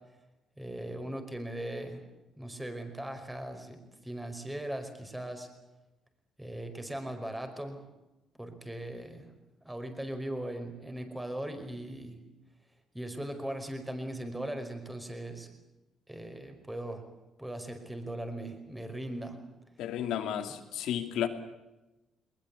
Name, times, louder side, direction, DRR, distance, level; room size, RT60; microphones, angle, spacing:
voice 1, 0.6-2.0 2.4-3.8 4.0-5.5 6.4-7.8 8.4-9.3 9.6-12.2 12.9-15.5 16.1-17.0 17.4-19.4, right 1 dB, 10° right, 6 dB, 5.1 m, -39 dB
voice 2, 19.8-21.3, left 10 dB, 85° left, 8 dB, 2.6 m, -32 dB
21.5 x 21.0 x 8.5 m, 1.0 s
cardioid pair, 90°, 0 cm